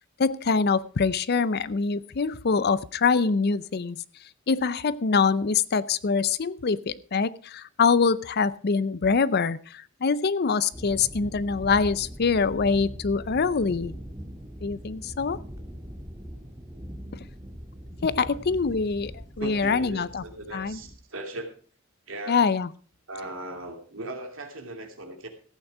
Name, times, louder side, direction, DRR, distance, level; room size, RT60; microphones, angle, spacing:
voice 1, 0.2-4.0 4.5-13.9 14.6-15.4 18.0-20.2 20.5-20.8 22.3-22.7, left 5 dB, 50° left, 18 dB, 0.5 m, -24 dB
sound 1, 10.7-21.0, equal, 15° right, 2.0 m, -41 dB
voice 2, 19.4-21.5 22.1-22.4 23.1-25.3, right 2 dB, 70° right, 4 dB, 2.7 m, -38 dB
14.5 x 9.0 x 4.8 m, 0.41 s
head